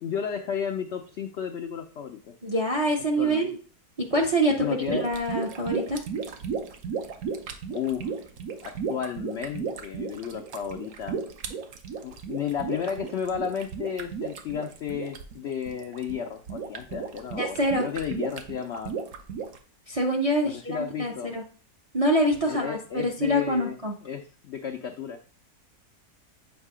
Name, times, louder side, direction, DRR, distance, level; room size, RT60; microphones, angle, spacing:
voice 1, 0.0-2.2 3.2-3.4 4.6-5.0 7.7-8.1 8.6-11.2 12.0-18.9 20.4-21.3 22.5-25.2, left 8 dB, 70° left, 5 dB, 0.6 m, -33 dB
voice 2, 2.4-3.6 4.1-6.0 17.4-17.9 19.9-21.4 21.9-23.9, right 1 dB, 40° right, 1 dB, 0.5 m, -25 dB
sound 1, 4.8-19.6, right 6 dB, 70° right, 1.1 m, -34 dB
7.3 x 2.7 x 4.8 m, 0.40 s
omnidirectional pair, 1.7 m